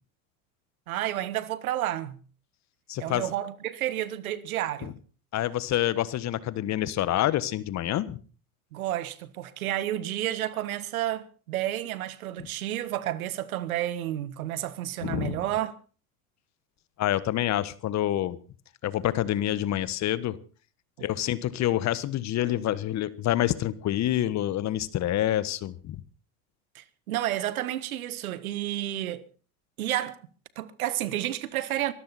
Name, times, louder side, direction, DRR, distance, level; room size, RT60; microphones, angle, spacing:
voice 1, 0.9-2.2 3.0-4.9 8.7-15.7 21.0-21.1 26.7-29.2 29.8-30.2 30.5-31.9, right 13 dB, 80° right, 1.5 m, -31 dB
voice 2, 2.9-3.3 4.8-4.9 5.3-8.2 15.0-15.4 17.0-18.4 18.8-20.4 21.0-26.0, left 13 dB, 40° left, 1.3 m, -27 dB
24.0 x 13.5 x 4.2 m
hypercardioid pair, 95°, 42 cm